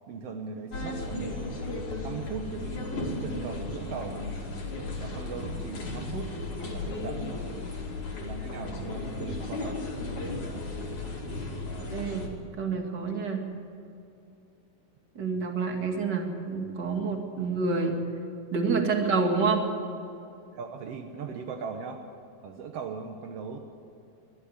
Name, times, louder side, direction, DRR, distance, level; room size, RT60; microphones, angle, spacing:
voice 1, 0.1-1.5 2.0-4.2 5.0-6.3 6.7-7.2 8.2-9.8 20.5-22.0 22.4-23.6, right 5 dB, 75° right, 4 dB, 1.4 m, -39 dB
sound 1, 0.7-12.3, left 2 dB, 55° left, 3.9 m, -35 dB
voice 2, 11.9-12.3 12.6-13.4 15.2-18.0 18.5-19.6, right 4 dB, 35° right, 3 dB, 2.1 m, -28 dB
22.0 x 12.5 x 9.7 m, 2.7 s
omnidirectional pair, 4.4 m